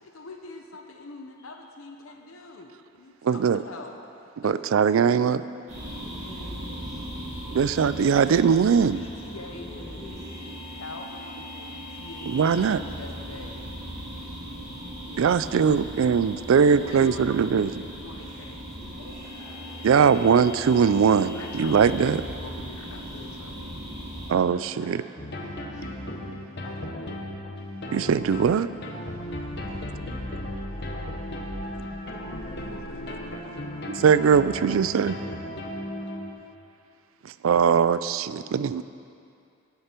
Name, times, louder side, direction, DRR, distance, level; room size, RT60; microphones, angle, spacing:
voice 1, 0.0-4.0 4.4-4.6 7.6-8.4 8.9-9.7 10.7-13.7 15.0-15.3 16.7-18.6 19.0-19.3 20.1-20.8 21.3-23.7 26.6-27.3 32.4-33.5 38.4-38.5, left 2 dB, 85° left, 3 dB, 0.9 m, -44 dB
voice 2, 3.2-3.6 4.4-5.4 7.5-9.1 12.3-12.8 15.2-17.9 19.8-22.2 24.3-25.0 27.9-28.7 33.9-35.2 37.2-38.8, right 6 dB, 75° right, 14 dB, 0.4 m, -21 dB
sound 1, 5.7-24.3, equal, 35° right, 3.0 m, -38 dB
voice 3, 6.0-7.0 9.5-10.7 15.3-15.8 18.2-18.4 18.7-19.8 24.5-25.3 25.7-26.1 27.3-27.4, left 1 dB, 15° left, -8 dB, 1.4 m, -46 dB
sound 2, 25.2-36.3, left 1 dB, 55° left, 1.3 m, -35 dB
19.0 x 6.7 x 4.5 m, 2.5 s
head